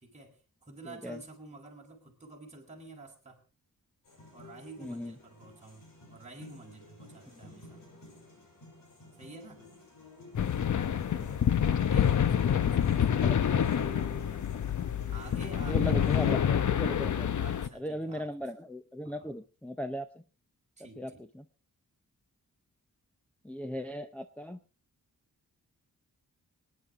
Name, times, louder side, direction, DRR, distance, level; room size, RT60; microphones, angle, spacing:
voice 1, 0.0-3.4 4.3-7.8 9.2-9.6 11.9-14.5 15.1-16.1 17.4-18.5 19.0-19.5 20.8-21.2, right 3 dB, 20° right, -1 dB, 4.0 m, -50 dB
voice 2, 0.9-1.2 4.8-5.1 11.1-11.4 13.2-13.4 15.7-17.3 17.7-20.1 21.0-21.1 23.4-24.6, equal, 5° left, 4 dB, 0.7 m, -37 dB
sound 1, 4.0-16.3, left 2 dB, 80° left, 6.3 m, -52 dB
sound 2, 10.4-17.7, left 9 dB, 65° left, 0.9 m, -27 dB
24.5 x 9.7 x 3.7 m, 0.32 s
wide cardioid pair, 175°, 33 cm